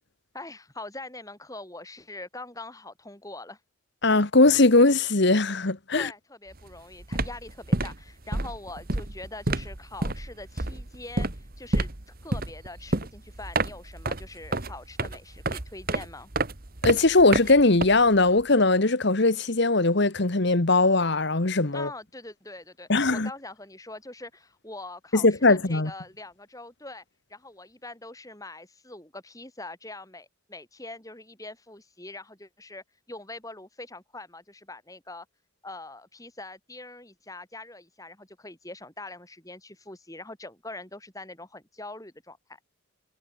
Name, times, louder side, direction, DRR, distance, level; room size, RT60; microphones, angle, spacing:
voice 1, 0.3-3.6 5.9-11.9 12.2-16.3 21.7-27.0 27.3-35.3 35.6-42.6, left 2 dB, 15° left, 4.1 m, -43 dB
voice 2, 4.0-6.1 16.8-21.9 22.9-23.3 25.1-25.9, left 2 dB, 50° left, 1.3 m, -20 dB
sound 1, 6.5-6.7 7.0-18.4, right 2 dB, 45° right, 1.8 m, -30 dB
head